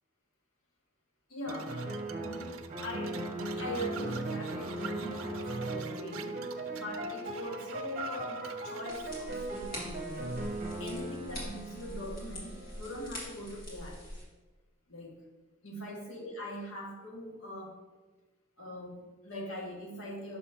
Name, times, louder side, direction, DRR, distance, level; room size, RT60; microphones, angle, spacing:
voice 1, 1.3-1.9 2.2-6.4 6.7-10.4 10.8-14.0 14.9-15.2 15.6-17.7 18.6-20.4, equal, 80° left, -2 dB, 1.5 m, -42 dB
sound 1, 1.5-13.0, right 1 dB, 40° right, 0.8 m, -38 dB
sound 2, 1.5-9.2, right 7 dB, 80° right, 0.4 m, -48 dB
sound 3, 8.9-14.2, equal, 45° left, 2.0 m, -44 dB
5.9 x 3.4 x 5.8 m, 1.2 s
head